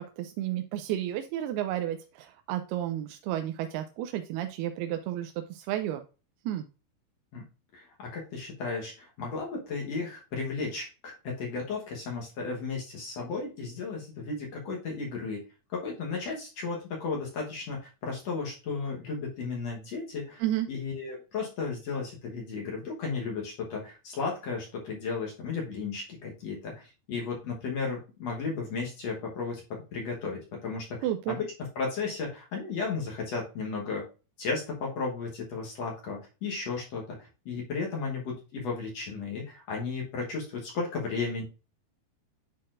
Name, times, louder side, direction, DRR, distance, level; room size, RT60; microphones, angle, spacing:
voice 1, 0.0-6.0 6.5-6.6 20.4-20.7 31.0-31.4, right 12 dB, 90° right, 6 dB, 2.5 m, -32 dB
voice 2, 7.7-15.4 15.7-31.5 31.7-34.0 34.4-41.4, left 4 dB, 65° left, -2 dB, 1.7 m, -34 dB
10.5 x 4.2 x 2.5 m, 0.31 s
omnidirectional pair, 4.4 m